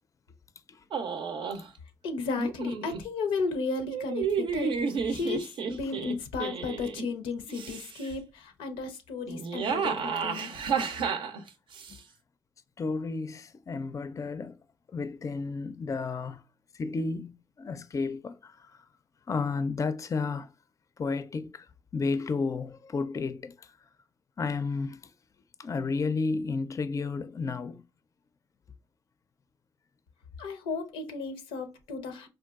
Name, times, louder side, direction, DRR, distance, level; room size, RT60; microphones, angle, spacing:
sound 1, 0.9-1.7 2.4-3.0 3.9-7.0 7.5-8.1 9.3-12.0, right 6 dB, 65° right, 0.5 m, -31 dB
voice 1, 2.0-4.7 5.1-10.5 30.4-32.3, left 4 dB, 90° left, 0.5 m, -34 dB
voice 2, 12.8-14.6 14.9-16.4 16.7-18.7 19.3-20.5 21.0-21.7 21.9-23.7 24.4-25.0 25.6-27.8, left 4 dB, 35° left, 0.4 m, -32 dB
3.8 x 2.3 x 2.3 m
supercardioid pair, 50°, 9 cm